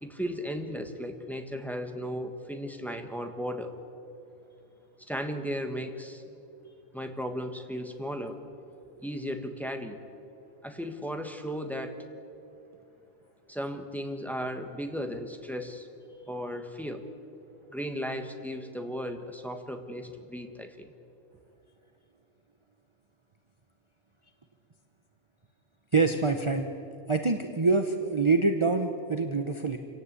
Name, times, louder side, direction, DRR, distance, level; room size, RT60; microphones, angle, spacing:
voice 1, 0.0-3.7 5.0-6.2 6.9-8.4 9.0-10.0 10.6-12.0 13.5-15.9 16.3-17.0 17.7-20.9, equal, ahead, 5 dB, 1.5 m, -35 dB
voice 2, 25.9-26.7 27.1-29.8, right 4 dB, 30° right, 6 dB, 0.9 m, -25 dB
26.5 x 17.5 x 8.3 m, 2.8 s
omnidirectional pair, 1.1 m